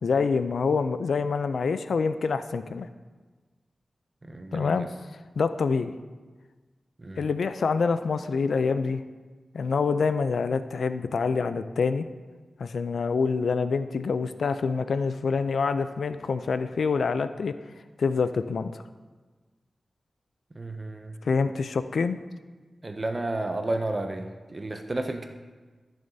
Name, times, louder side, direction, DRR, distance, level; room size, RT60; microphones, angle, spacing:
voice 1, 0.0-2.9 4.5-4.9 5.4-5.9 7.2-9.0 9.5-12.1 12.6-17.5 18.0-18.7 21.3-22.2, left 5 dB, 80° left, 11 dB, 0.3 m, -26 dB
voice 2, 4.2-4.9 7.0-7.2 20.5-21.2 22.8-25.3, right 2 dB, 25° right, 6 dB, 0.5 m, -32 dB
14.0 x 6.8 x 2.7 m, 1.3 s
wide cardioid pair, 135°, 0 cm